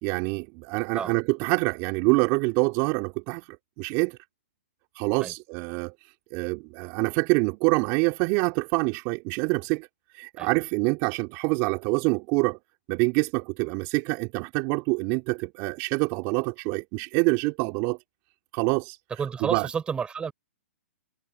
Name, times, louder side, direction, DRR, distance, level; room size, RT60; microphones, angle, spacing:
voice 1, 0.0-3.5 3.8-4.2 5.0-5.9 6.3-9.9 10.1-12.6 12.9-18.0 18.5-19.0 19.4-19.7, right 29 dB, 35° right, 3.5 m, -26 dB
voice 2, 19.2-20.3, right 6 dB, 15° right, 6.3 m, -30 dB
hypercardioid pair, 135°, 7 cm